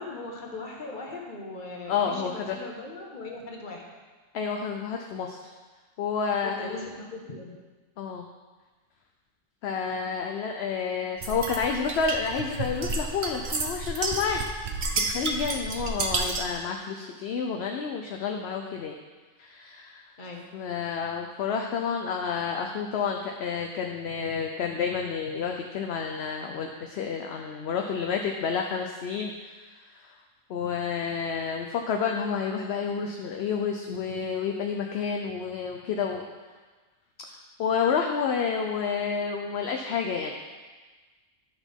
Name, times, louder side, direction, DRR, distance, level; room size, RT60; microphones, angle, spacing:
voice 1, 0.0-3.9 6.4-7.6 20.2-20.4, left 3 dB, 40° left, -1 dB, 1.3 m, -39 dB
voice 2, 1.9-2.6 4.3-5.5 6.0-6.8 8.0-8.2 9.6-14.4 15.0-18.9 19.4-20.1 20.5-30.2 30.5-36.3 37.2-40.3, left 6 dB, 60° left, 2 dB, 0.8 m, -30 dB
sound 1, 11.2-16.6, right 3 dB, 45° right, 0.7 m, -31 dB
10.5 x 6.0 x 3.5 m, 1.3 s
omnidirectional pair, 1.3 m